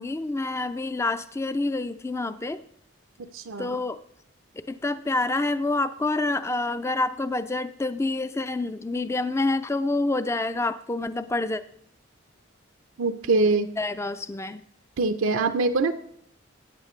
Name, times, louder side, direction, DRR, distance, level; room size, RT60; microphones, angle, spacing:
voice 1, 0.0-2.6 3.6-4.0 4.7-11.6 13.8-14.6, left 2 dB, 15° left, 12 dB, 0.3 m, -27 dB
voice 2, 3.3-3.8 13.0-13.7 15.0-15.9, right 3 dB, 80° right, 8 dB, 0.6 m, -23 dB
14.5 x 8.8 x 3.2 m, 0.68 s
head